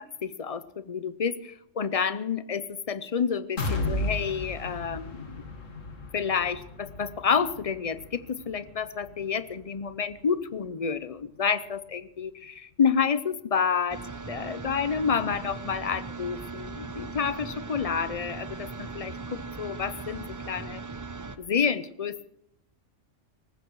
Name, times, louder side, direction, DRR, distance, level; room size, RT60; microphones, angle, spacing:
voice 1, 0.2-5.4 6.1-20.8 21.4-22.3, left 6 dB, 40° left, 15 dB, 0.6 m, -29 dB
sound 1, 3.6-11.4 11.8-11.9 12.3-12.4, left 2 dB, 85° left, 2.3 m, -36 dB
sound 2, 13.9-21.4, right 4 dB, 25° right, 0.4 m, -39 dB
19.0 x 15.0 x 4.7 m, 0.76 s
omnidirectional pair, 1.3 m